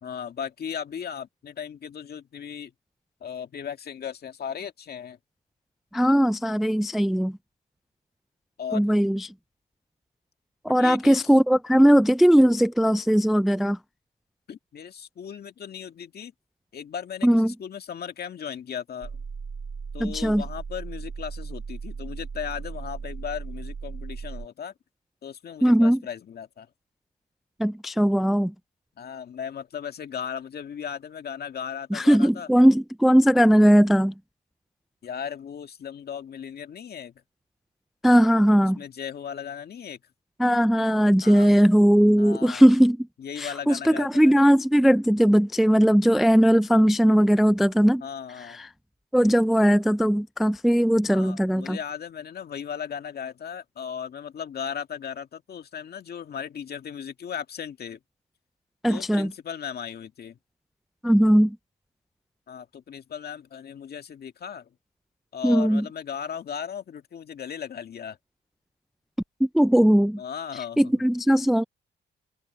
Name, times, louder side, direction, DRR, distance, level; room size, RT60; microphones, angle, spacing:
voice 1, 0.0-2.7 3.2-5.2 8.6-9.0 10.8-11.3 14.5-16.3 16.7-19.2 19.9-24.7 25.2-26.7 29.0-32.5 35.0-37.2 38.7-40.0 41.2-41.5 42.2-42.7 43.2-44.4 48.0-48.6 51.1-58.0 58.9-60.4 62.5-64.7 65.3-68.2 70.2-71.0, left 8 dB, 55° left, 2.1 m, -36 dB
voice 2, 5.9-7.4 8.7-9.3 10.6-13.8 17.2-17.5 20.0-20.4 25.6-26.0 27.6-28.5 31.9-34.1 38.0-38.8 40.4-43.0 43.4-48.0 48.5-48.7 49.1-51.8 58.8-59.3 61.0-61.6 65.4-65.8 69.4-70.2 70.8-71.6, equal, ahead, 0.3 m, -19 dB
sound 1, 19.0-24.5, right 5 dB, 35° right, 2.4 m, -36 dB
cardioid pair, 90°, 20 cm